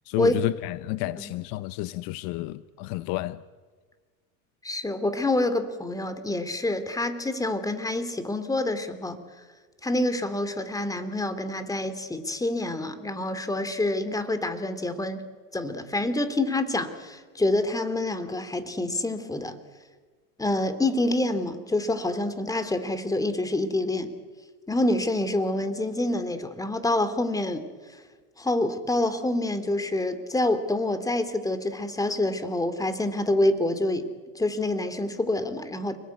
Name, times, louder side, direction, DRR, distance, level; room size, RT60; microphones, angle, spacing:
voice 1, 0.1-3.4, left 17 dB, 55° left, 1.0 m, -30 dB
voice 2, 4.6-9.2 9.8-15.2 15.5-19.5 20.4-24.1 24.7-27.6 28.4-34.1 34.3-36.0, left 2 dB, 10° left, 2.7 m, -27 dB
29.5 x 20.5 x 9.4 m
supercardioid pair, 115°, 42 cm